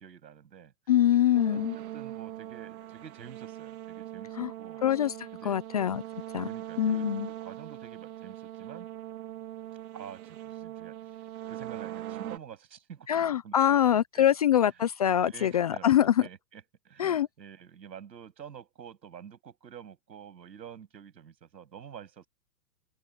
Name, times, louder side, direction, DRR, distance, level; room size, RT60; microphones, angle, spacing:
voice 1, 0.0-0.7 1.4-4.8 5.3-5.6 6.4-8.9 9.9-11.2 11.5-13.1 13.4-14.3 15.2-22.3, right 8 dB, 85° right, 7.4 m, -48 dB
voice 2, 0.9-1.8 4.4-4.5 4.8-6.0 6.3-6.5 6.8-7.3 13.1-16.3 17.0-17.3, left 10 dB, 25° left, 0.4 m, -24 dB
sound 1, 1.3-12.4, right 13 dB, 60° right, 2.8 m, -41 dB
hypercardioid pair, 145°, 50 cm